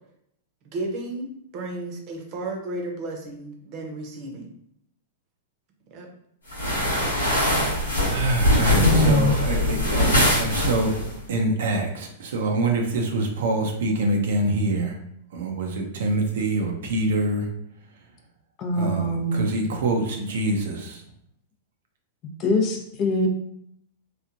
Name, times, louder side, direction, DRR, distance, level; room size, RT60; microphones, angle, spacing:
voice 1, 0.7-1.3 1.5-4.5 5.9-6.1 7.5-7.9, right 2 dB, 45° right, 1 dB, 0.8 m, -33 dB
sound 1, 6.5-11.1, left 1 dB, 90° left, 1.0 m, -22 dB
voice 2, 8.0-10.9 11.3-15.0 15.3-17.5 18.8-21.0, right 2 dB, 70° right, 2 dB, 0.5 m, -25 dB
voice 3, 8.7-9.3 18.6-19.4 22.4-23.3, left 1 dB, 40° left, 3 dB, 0.6 m, -22 dB
3.0 x 2.4 x 2.5 m, 0.72 s
hypercardioid pair, 105°, 0 cm